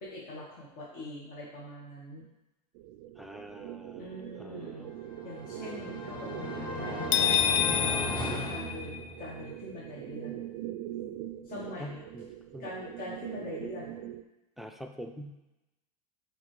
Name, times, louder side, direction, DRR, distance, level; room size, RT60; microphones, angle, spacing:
voice 1, 0.0-2.2 3.9-4.9 5.2-8.1 8.5-10.5 11.4-12.0 12.6-14.0, left 1 dB, 45° left, -6 dB, 1.5 m, -43 dB
sound 1, 2.7-14.2, right 12 dB, 65° right, 0.4 m, -42 dB
voice 2, 3.2-5.0 11.8-12.2 12.5-12.7 14.6-15.4, equal, ahead, 5 dB, 0.4 m, -45 dB
sound 2, 5.1-9.5, left 1 dB, 25° left, 1.0 m, -36 dB
sound 3, 7.1-9.3, left 10 dB, 70° left, 0.5 m, -28 dB
8.5 x 3.5 x 3.2 m, 0.97 s
supercardioid pair, 115°, 20 cm